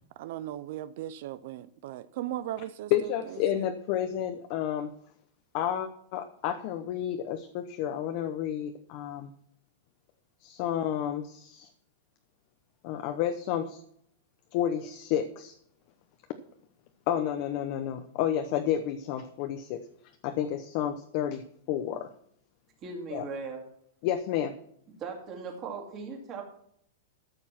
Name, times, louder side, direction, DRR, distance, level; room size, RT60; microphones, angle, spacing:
voice 1, 0.2-3.7, right 13 dB, 50° right, 15 dB, 0.5 m, -38 dB
voice 2, 2.9-4.9 5.5-9.3 10.4-11.7 12.8-13.8 14.5-15.5 17.1-19.8 20.2-22.1 23.1-23.3 24.0-24.5, left 10 dB, 40° left, 8 dB, 0.8 m, -30 dB
voice 3, 22.8-23.6 25.0-26.4, right 4 dB, 25° right, 2 dB, 2.4 m, -38 dB
13.5 x 6.9 x 5.9 m, 0.68 s
supercardioid pair, 165°, 0 cm